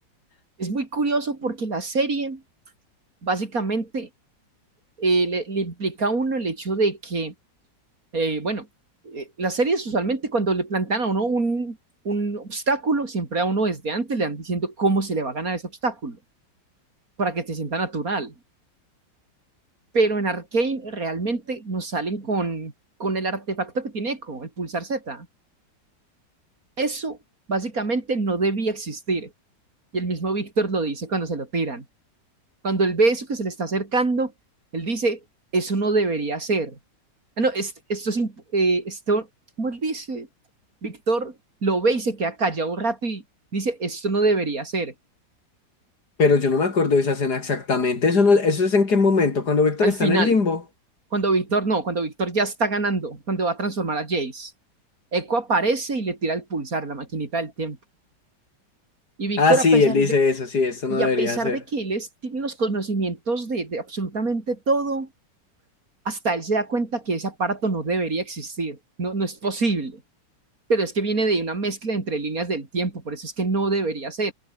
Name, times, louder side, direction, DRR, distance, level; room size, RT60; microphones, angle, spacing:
voice 1, 0.6-2.4 3.2-4.1 5.0-7.3 8.1-8.7 9.0-11.8 12.0-16.2 17.2-18.3 19.9-22.7 23.0-25.3 26.8-27.2 27.5-29.3 29.9-31.8 32.6-34.3 34.7-35.2 35.5-36.8 37.4-39.3 39.6-40.3 40.8-41.4 41.6-43.2 43.5-44.9 49.8-50.4 51.1-54.5 55.1-57.8 59.2-60.1 60.9-65.1 66.1-70.0 70.7-74.3, right 3 dB, 50° right, 3.9 m, -25 dB
voice 2, 46.2-50.6 59.4-61.6, left 4 dB, 60° left, 3.5 m, -20 dB
omnidirectional pair, 2.0 m